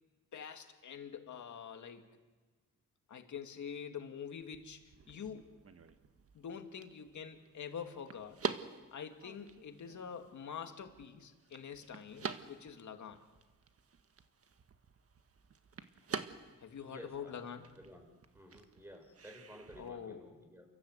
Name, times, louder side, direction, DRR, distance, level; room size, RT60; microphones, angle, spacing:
voice 1, 0.3-2.0 3.1-5.6 6.3-8.4 8.9-13.2 16.6-17.6 19.8-20.3, left 7 dB, 60° left, 5 dB, 2.4 m, -46 dB
sound 1, 4.4-19.9, right 6 dB, 45° right, 1.5 m, -47 dB
voice 2, 16.8-18.1 18.3-20.6, equal, 5° right, 4 dB, 6.3 m, -54 dB
29.5 x 14.5 x 8.2 m, 1.3 s
cardioid pair, 80°, 33 cm